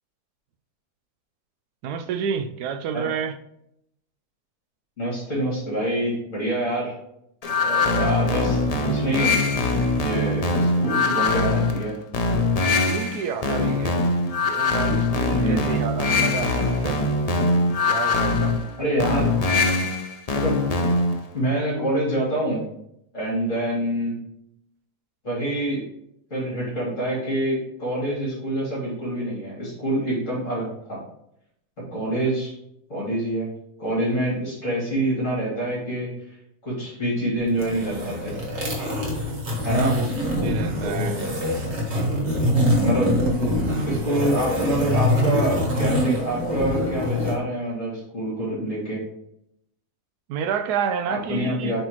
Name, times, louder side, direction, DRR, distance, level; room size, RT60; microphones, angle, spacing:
voice 1, 1.8-3.4 12.8-14.0 14.4-17.0 17.9-18.6 32.2-32.3 39.8-40.1 40.4-41.1 50.3-51.9, right 7 dB, 80° right, 1.1 m, -29 dB
voice 2, 5.0-6.9 7.6-9.4 10.0-12.0 15.4-15.7 18.7-19.4 20.3-20.6 21.3-22.6 23.1-24.1 25.2-25.8 26.3-31.0 31.9-32.5 32.9-33.5 33.8-36.1 36.6-38.3 39.6-39.9 40.8-41.3 42.8-43.1 43.8-49.0 51.1-51.9, right 1 dB, 50° left, 3.1 m, -26 dB
sound 1, 7.4-21.2, left 3 dB, 75° left, 0.3 m, -22 dB
sound 2, 37.5-47.4, left 1 dB, 45° right, 1.7 m, -24 dB
7.7 x 4.0 x 3.0 m
omnidirectional pair, 1.7 m